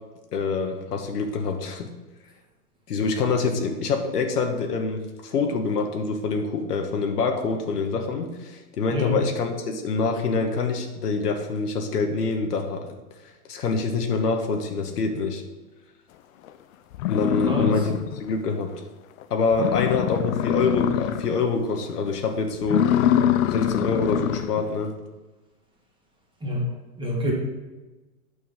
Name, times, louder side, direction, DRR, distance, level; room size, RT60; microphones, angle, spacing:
voice 1, 0.3-1.9 2.9-12.9 13.5-15.4 17.1-18.7 19.3-23.2 23.5-24.9, left 4 dB, 85° left, 4 dB, 1.5 m, -25 dB
sound 1, 16.5-16.6 16.9-18.3 18.7-18.8 19.2-19.3 19.5-21.4 21.8-22.1 22.6-24.6, left 10 dB, 60° left, 0.6 m, -24 dB
voice 2, 27.0-27.3, left 1 dB, 10° right, -2 dB, 1.9 m, -26 dB
8.6 x 6.3 x 3.7 m, 1.1 s
hypercardioid pair, 130°, 46 cm